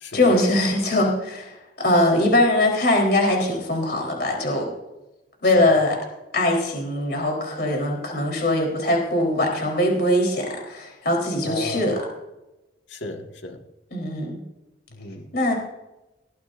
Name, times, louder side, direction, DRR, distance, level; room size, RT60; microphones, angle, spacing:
voice 1, 0.1-4.7 5.4-6.0 6.3-12.0 13.9-14.4 15.3-15.5, left 1 dB, 55° left, 0 dB, 3.9 m, -21 dB
voice 2, 11.4-11.9 12.9-13.6 14.9-15.3, left 2 dB, 75° left, 3 dB, 1.8 m, -34 dB
20.0 x 15.0 x 2.6 m, 0.97 s
head